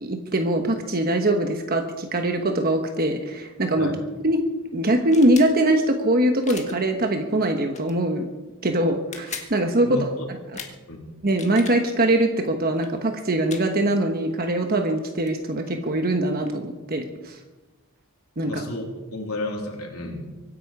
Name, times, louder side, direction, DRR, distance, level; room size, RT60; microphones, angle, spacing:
voice 1, 0.0-3.9 4.2-4.4 4.7-8.3 8.6-10.1 11.2-17.4 18.4-18.6, right 1 dB, 45° right, 5 dB, 1.2 m, -22 dB
sound 1, 5.1-5.5 6.4-6.7 7.7-7.9 8.9-9.5 10.5-10.7 11.2-11.8 12.7-12.9 13.5-13.6 15.0-15.1 15.3-16.6, left 6 dB, 30° left, 1.7 m, -38 dB
voice 2, 9.8-10.3 10.5-11.1 18.4-18.8 19.1-20.3, left 2 dB, 80° left, 0 dB, 3.3 m, -32 dB
24.5 x 10.0 x 5.0 m, 1.2 s
head